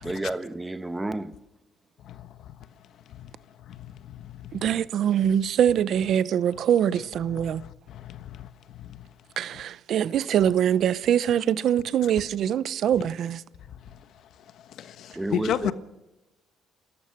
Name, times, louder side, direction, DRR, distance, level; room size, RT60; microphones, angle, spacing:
voice 1, 0.0-1.4 10.2-10.3 15.1-15.7, right 2 dB, 10° right, 1.2 m, -31 dB
voice 2, 2.0-2.5 3.1-3.3 3.7-4.7 7.3-9.1 13.9-14.0 14.5-15.7, left 10 dB, 65° left, 1.3 m, -34 dB
voice 3, 4.5-7.6 9.4-13.4, right 9 dB, 60° right, 0.8 m, -23 dB
29.5 x 14.5 x 6.6 m
cardioid pair, 120°, 0 cm